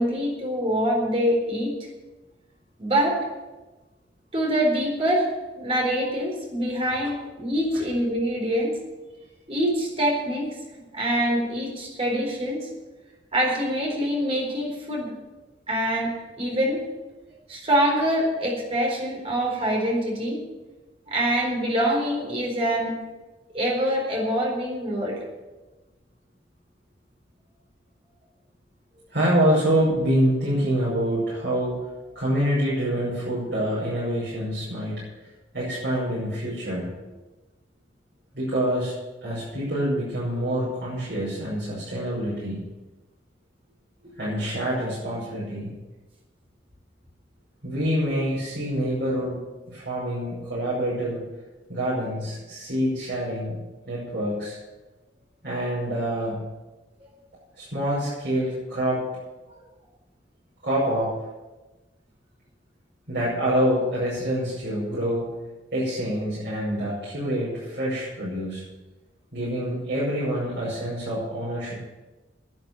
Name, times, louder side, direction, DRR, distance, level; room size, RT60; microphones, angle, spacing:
voice 1, 0.0-1.7 2.8-3.2 4.3-5.3 5.6-8.8 9.5-10.5 10.9-12.7 13.3-15.1 15.7-16.1 16.4-16.9 17.5-20.4 21.1-22.9 23.5-25.2, equal, 30° right, -1 dB, 4.2 m, -25 dB
voice 2, 29.1-31.8 32.2-34.9 35.5-36.9 38.3-38.9 39.2-42.6 44.2-45.7 47.6-49.4 49.7-51.2 51.7-53.6 53.9-54.6 55.4-56.4 57.6-59.0 60.6-61.1 63.1-65.3 65.7-68.6 69.3-71.7, equal, 60° right, -8 dB, 5.8 m, -26 dB
11.0 x 9.5 x 9.0 m, 1.2 s
head